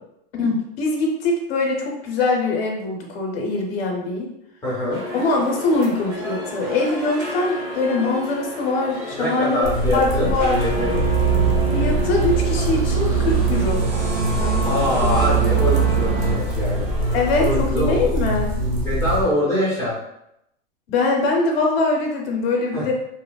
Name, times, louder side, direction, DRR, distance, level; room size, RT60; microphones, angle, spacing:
voice 1, 0.4-4.3 5.1-10.6 11.7-13.8 14.4-15.1 17.1-18.6 20.9-22.9, left 3 dB, 85° left, 0 dB, 0.7 m, -23 dB
voice 2, 4.6-5.0 9.1-10.3 10.6-11.0 14.6-16.9 17.4-17.9 18.6-19.9 22.7-22.8, left 1 dB, 10° left, -8 dB, 0.5 m, -24 dB
sound 1, 4.9-17.5, left 2 dB, 15° right, 0.9 m, -32 dB
sound 2, 9.6-19.2, equal, 85° right, 0.8 m, -24 dB
sound 3, 10.8-16.4, right 9 dB, 45° right, 0.5 m, -22 dB
2.8 x 2.0 x 2.2 m, 0.80 s
supercardioid pair, 150°, 29 cm